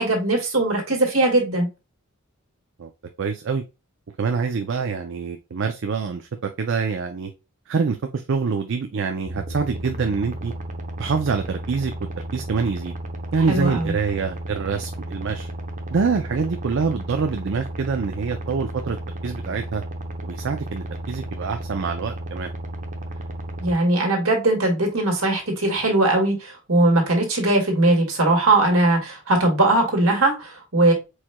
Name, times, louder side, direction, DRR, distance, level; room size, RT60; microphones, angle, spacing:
voice 1, 0.0-1.7 13.5-13.9 23.6-30.9, right 2 dB, 75° right, 1.9 m, -20 dB
voice 2, 3.2-3.6 4.2-7.3 7.7-10.5 11.0-12.9 13.3-15.5 15.9-19.0 19.2-19.8 20.2-22.5, right 5 dB, 60° right, 0.5 m, -25 dB
sound 1, 9.3-23.8, right 1 dB, 35° right, 0.8 m, -33 dB
4.7 x 4.2 x 2.2 m
head